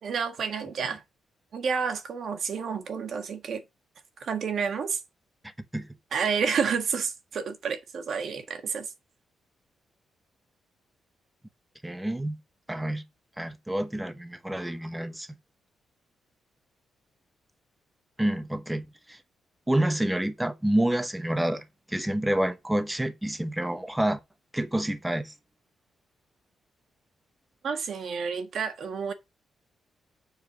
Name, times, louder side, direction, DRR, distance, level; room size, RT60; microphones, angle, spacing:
voice 1, 0.0-1.0 1.5-3.6 4.2-5.0 6.1-8.9 27.6-29.1, right 6 dB, 50° right, 1.6 m, -30 dB
voice 2, 11.8-12.4 12.7-13.0 13.4-15.3 18.2-19.2 19.7-24.2 24.5-25.3, right 1 dB, 5° right, 0.9 m, -28 dB
7.2 x 4.8 x 6.2 m
wide cardioid pair, 170°, 0 cm